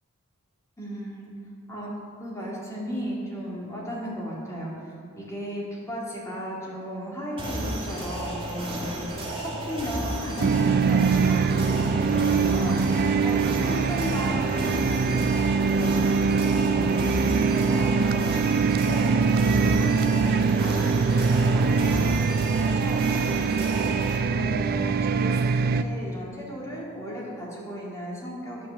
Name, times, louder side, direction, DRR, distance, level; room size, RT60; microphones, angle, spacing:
voice 1, 0.8-1.3 1.7-16.3 16.6-18.5 18.7-19.3 19.6-25.4 25.7-28.7, equal, 15° left, -5 dB, 2.3 m, -35 dB
sound 1, 7.4-24.2, right 1 dB, 25° right, 1.7 m, -33 dB
sound 2, 10.4-25.8, right 5 dB, 45° right, 0.3 m, -23 dB
9.5 x 6.2 x 7.0 m, 2.4 s
head